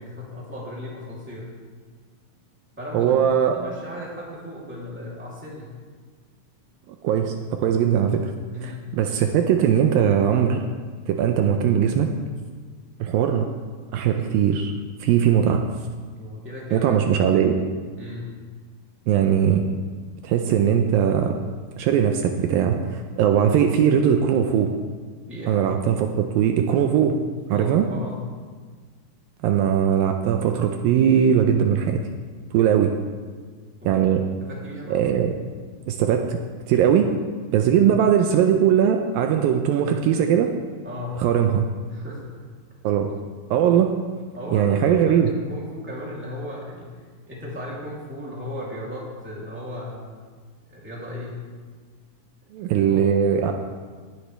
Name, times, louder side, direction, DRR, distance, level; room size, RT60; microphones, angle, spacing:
voice 1, 0.0-1.5 2.8-3.2 3.5-5.7 8.5-8.8 16.1-16.9 17.3-17.5 17.9-18.3 25.3-25.5 27.5-28.2 33.8-34.0 34.4-35.0 40.8-41.2 41.9-42.2 44.3-46.9 47.3-50.2 50.7-51.3 52.9-53.0, left 1 dB, 5° right, -6 dB, 2.5 m, -36 dB
voice 2, 2.9-3.6 6.9-8.3 8.6-10.6 11.1-12.1 13.0-13.5 13.9-14.7 15.0-15.6 16.7-17.5 19.1-19.6 20.2-21.4 21.8-24.7 25.5-27.2 27.5-27.9 29.4-32.0 32.5-32.9 33.9-34.2 34.9-35.3 35.9-36.4 36.7-37.1 37.5-40.5 41.2-41.7 42.8-43.1 43.5-43.9 44.5-45.3 52.5-53.5, right 8 dB, 80° right, 4 dB, 2.3 m, -20 dB
19.0 x 9.6 x 3.4 m, 1.5 s
omnidirectional pair, 4.4 m